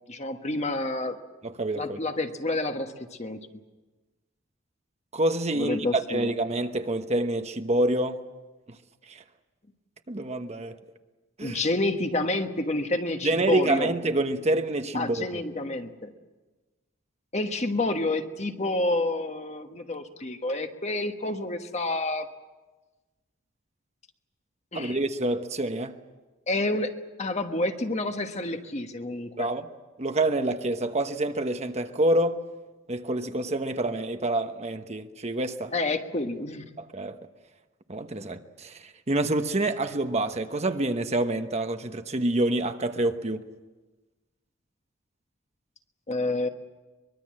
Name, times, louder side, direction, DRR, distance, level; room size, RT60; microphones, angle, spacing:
voice 1, 0.1-1.2 1.7-2.9 3.2-3.4 5.5-6.3 11.4-13.9 14.9-16.1 17.3-22.3 24.7-25.0 26.5-26.9 27.2-29.5 35.7-36.6 46.1-46.5, left 2 dB, 35° left, 1.4 m, -29 dB
voice 2, 1.4-2.0 5.1-8.2 9.1-9.2 10.1-10.8 11.4-11.6 13.2-15.3 24.7-26.0 29.4-29.7 30.0-32.4 32.9-35.7 36.8-37.2 37.9-43.4, right 1 dB, 35° right, 1.0 m, -27 dB
23.5 x 22.0 x 7.6 m
head